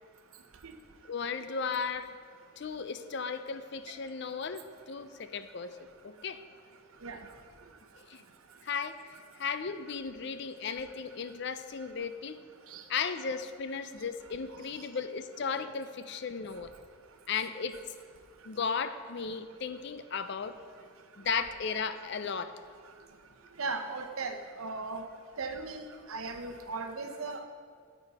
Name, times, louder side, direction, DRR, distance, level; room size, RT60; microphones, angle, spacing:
voice 1, 1.1-2.2 2.6-5.7 6.0-6.4 8.1-8.2 8.6-9.0 9.4-12.4 12.9-16.7 17.3-17.8 18.4-20.5 21.2-22.6, left 5 dB, 55° left, 11 dB, 0.5 m, -35 dB
voice 2, 23.6-25.0 25.4-27.4, right 3 dB, 80° right, 6 dB, 0.8 m, -37 dB
10.5 x 8.2 x 4.1 m, 2.1 s
head